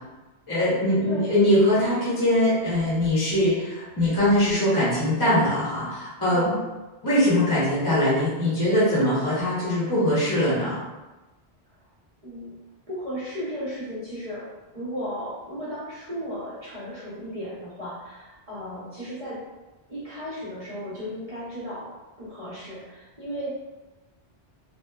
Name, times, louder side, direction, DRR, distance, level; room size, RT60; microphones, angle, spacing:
voice 1, 0.5-6.5 7.0-10.8, left 1 dB, 20° left, -10 dB, 0.9 m, -22 dB
voice 2, 12.2-12.6 12.9-14.5 14.7-19.4 19.9-21.9 22.2-23.6, equal, 40° right, -10 dB, 0.8 m, -35 dB
2.9 x 2.1 x 2.3 m, 1.1 s
omnidirectional pair, 1.1 m